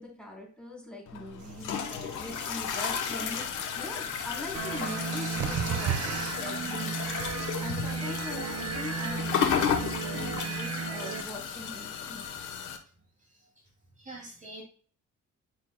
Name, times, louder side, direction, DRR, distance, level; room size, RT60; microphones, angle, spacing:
voice 1, 0.0-12.2, left 1 dB, 5° left, -3 dB, 3.7 m, -42 dB
sound 1, 1.1-12.8, left 7 dB, 85° left, 1.2 m, -33 dB
sound 2, 1.4-6.6, right 8 dB, 85° right, 1.0 m, -37 dB
sound 3, 4.5-11.2, right 5 dB, 55° right, 0.9 m, -35 dB
voice 2, 14.0-14.6, right 2 dB, 25° right, -3 dB, 2.6 m, -45 dB
10.5 x 5.8 x 2.2 m, 0.44 s
cardioid pair, 90°, 30 cm